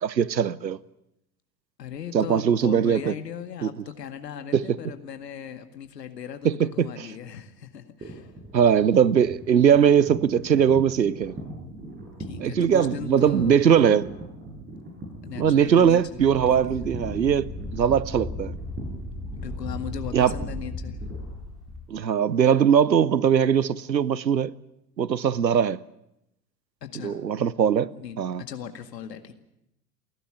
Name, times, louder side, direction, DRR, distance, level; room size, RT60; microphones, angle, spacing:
voice 1, 0.0-0.8 2.1-3.1 3.6-3.7 4.5-4.8 6.4-6.9 8.5-11.4 12.4-14.1 15.4-18.5 20.1-20.3 21.9-24.5 25.0-25.8 27.0-27.9 28.2-28.4, right 8 dB, 85° right, 0.8 m, -20 dB
voice 2, 1.8-8.3 12.2-14.0 15.2-16.9 19.4-21.0 26.8-27.2 27.9-29.3, left 8 dB, 75° left, 2.1 m, -38 dB
sound 1, 8.0-22.1, right 1 dB, 20° right, 7.9 m, -41 dB
Wind, 15.5-21.8, left 1 dB, ahead, 4.6 m, -36 dB
29.0 x 12.0 x 9.6 m
figure-of-eight pair, 85°, 49 cm